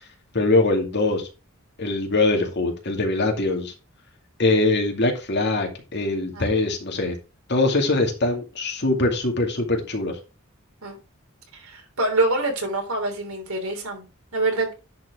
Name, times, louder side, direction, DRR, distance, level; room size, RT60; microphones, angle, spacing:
voice 1, 0.3-1.3 1.8-3.7 4.4-7.2 7.5-10.2, left 2 dB, 55° left, 2.3 m, -22 dB
voice 2, 11.5-14.7, right 2 dB, 85° right, 3.3 m, -26 dB
10.5 x 4.4 x 4.7 m
head